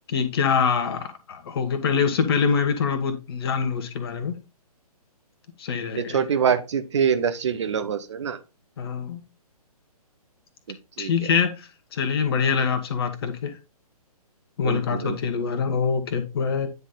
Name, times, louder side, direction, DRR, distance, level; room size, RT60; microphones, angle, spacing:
voice 1, 0.1-4.3 5.6-6.2 8.8-9.2 11.0-13.6 14.6-16.7, left 6 dB, 40° left, 1.2 m, -24 dB
voice 2, 5.9-8.4 10.7-11.1 14.6-15.2, right 7 dB, 50° right, 0.9 m, -25 dB
9.3 x 4.1 x 3.8 m
figure-of-eight pair, 130°, 20 cm